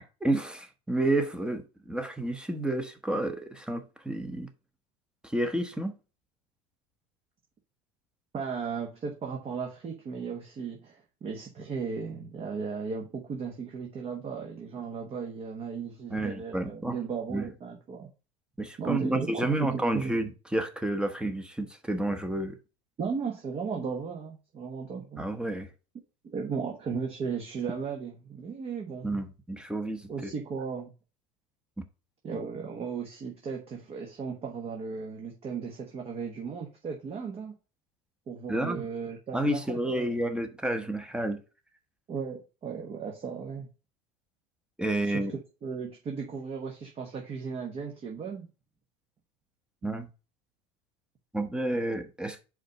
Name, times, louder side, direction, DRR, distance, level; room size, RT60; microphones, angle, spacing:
voice 1, 0.2-4.5 5.2-5.9 16.1-17.0 17.3-17.4 18.6-22.6 25.2-25.7 29.0-30.3 38.5-38.8 39.3-41.4 44.8-45.3 49.8-50.1 51.3-52.4, right 1 dB, 5° right, 0.9 m, -30 dB
voice 2, 8.3-18.1 18.8-20.1 23.0-25.2 26.2-29.1 30.1-30.9 32.2-37.5 38.3-40.2 42.1-43.7 45.0-48.5, right 5 dB, 35° right, 1.1 m, -36 dB
5.0 x 4.0 x 5.4 m
supercardioid pair, 105°, 17 cm